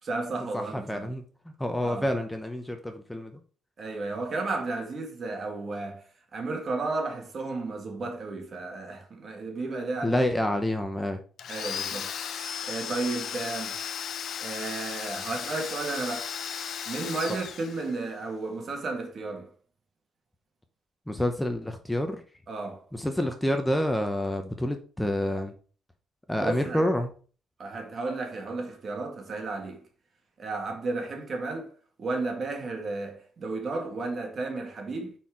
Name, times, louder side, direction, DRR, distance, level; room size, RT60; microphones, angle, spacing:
voice 1, 0.0-1.1 1.8-2.0 3.8-6.0 6.3-10.2 11.5-12.1 12.7-13.8 14.4-16.3 16.9-19.5 22.5-22.8 26.4-26.8 27.6-29.8 30.4-31.7 32.0-35.1, right 3 dB, 45° right, 2.0 m, -33 dB
voice 2, 0.5-3.3 10.0-11.2 21.1-22.2 22.9-25.5 26.3-27.1, left 1 dB, 5° left, 0.8 m, -28 dB
Domestic sounds home sounds, 11.4-18.2, left 8 dB, 65° left, 0.7 m, -35 dB
5.6 x 4.4 x 4.9 m
cardioid pair, 90°, 0 cm